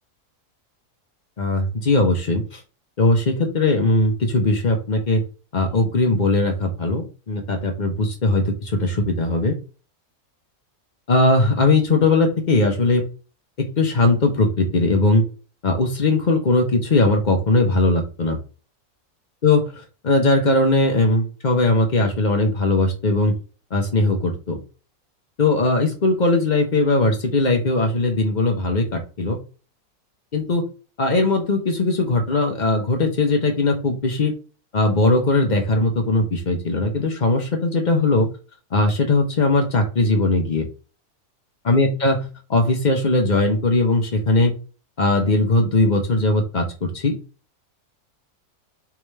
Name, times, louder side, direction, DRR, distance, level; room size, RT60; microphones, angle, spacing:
voice 1, 1.4-2.6 3.0-5.2 5.5-9.6 11.1-13.0 13.6-15.2 15.6-18.4 19.4-19.7 20.0-23.3 23.7-24.6 25.4-29.4 30.3-30.7 31.0-34.3 34.7-38.3 38.7-40.7 41.6-42.2 42.5-44.5 45.0-47.2, left 2 dB, 40° left, 3 dB, 0.7 m, -19 dB
3.5 x 3.2 x 3.2 m, 0.34 s
omnidirectional pair, 1.6 m